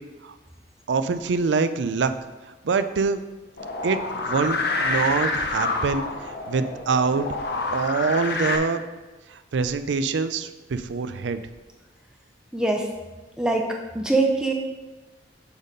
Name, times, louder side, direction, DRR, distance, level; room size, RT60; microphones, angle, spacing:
voice 1, 0.9-2.1 2.6-3.2 3.8-7.3 7.7-8.8 9.3-11.4, right 4 dB, 75° right, 11 dB, 0.4 m, -25 dB
sound 1, 3.6-8.6, left 3 dB, 55° left, 0.7 m, -28 dB
voice 2, 12.5-12.9 13.4-14.5, right 2 dB, 5° right, 1 dB, 0.5 m, -23 dB
7.0 x 4.1 x 5.1 m, 1.2 s
head